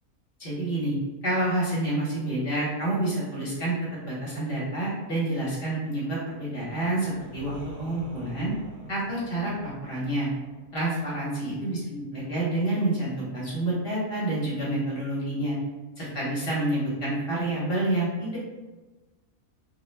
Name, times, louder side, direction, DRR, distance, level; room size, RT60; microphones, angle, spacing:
voice 1, 0.4-1.0 1.2-8.5 8.9-10.3 10.7-15.6 16.0-18.4, right 1 dB, 50° left, -7 dB, 0.9 m, -28 dB
sound 1, 6.7-12.3, equal, 90° right, 1.1 m, -47 dB
2.5 x 2.1 x 3.1 m, 1.2 s
omnidirectional pair, 1.5 m